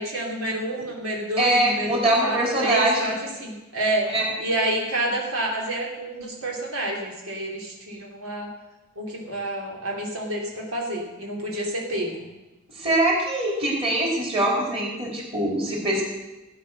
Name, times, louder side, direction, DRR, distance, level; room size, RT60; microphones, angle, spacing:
voice 1, 0.0-3.1 3.4-4.1 4.4-8.5 9.0-12.3, right 1 dB, 90° right, -1 dB, 3.4 m, -28 dB
voice 2, 1.4-3.1 4.1-4.2 12.7-16.0, right 1 dB, 30° right, -2 dB, 3.9 m, -23 dB
16.0 x 9.4 x 6.6 m, 1.1 s
head